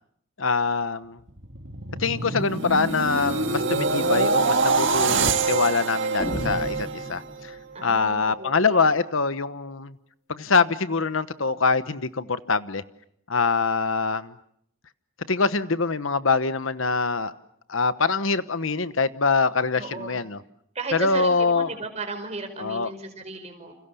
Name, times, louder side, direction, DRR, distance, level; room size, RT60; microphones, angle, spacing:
voice 1, 0.4-1.2 2.0-10.0 10.3-12.8 13.3-14.3 15.3-17.3 17.7-20.4 20.9-21.7 22.6-22.9, left 4 dB, 70° left, 13 dB, 1.1 m, -24 dB
sound 1, 1.3-7.5 8.0-8.3, right 4 dB, 60° right, 2.3 m, -25 dB
sound 2, 6.2-7.8, equal, 30° left, 3.3 m, -33 dB
voice 2, 7.7-8.9 19.8-20.2 20.8-23.7, right 3 dB, 30° right, 6 dB, 5.1 m, -35 dB
29.5 x 28.0 x 7.0 m, 0.70 s
head